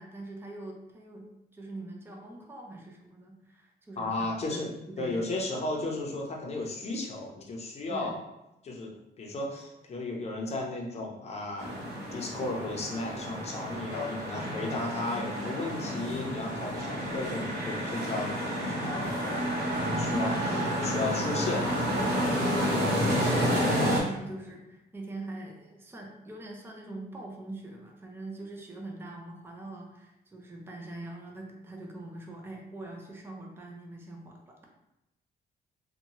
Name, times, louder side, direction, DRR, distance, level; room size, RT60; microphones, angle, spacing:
voice 1, 0.0-5.3 7.9-8.2 20.3-20.9 22.4-34.6, right 2 dB, 15° right, 1 dB, 0.4 m, -43 dB
voice 2, 4.0-4.7 5.0-8.1 8.6-20.4 20.8-21.7 23.2-23.4, left 2 dB, 35° left, -1 dB, 0.6 m, -35 dB
sound 1, 11.6-24.0, equal, 65° right, 0.9 m, -30 dB
2.7 x 2.2 x 2.9 m, 0.91 s
cardioid pair, 135°, 18 cm